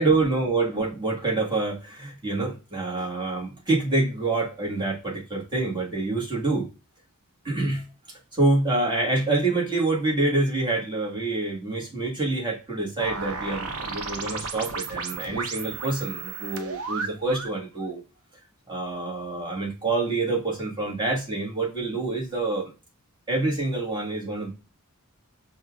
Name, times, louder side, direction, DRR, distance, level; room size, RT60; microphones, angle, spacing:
voice 1, 0.0-6.7 7.4-7.8 8.3-18.0 18.7-22.7 23.3-24.5, right 2 dB, 20° right, -2 dB, 1.3 m, -26 dB
sound 1, 13.0-17.6, right 4 dB, 65° right, 0.6 m, -34 dB
5.5 x 2.3 x 2.2 m, 0.31 s
head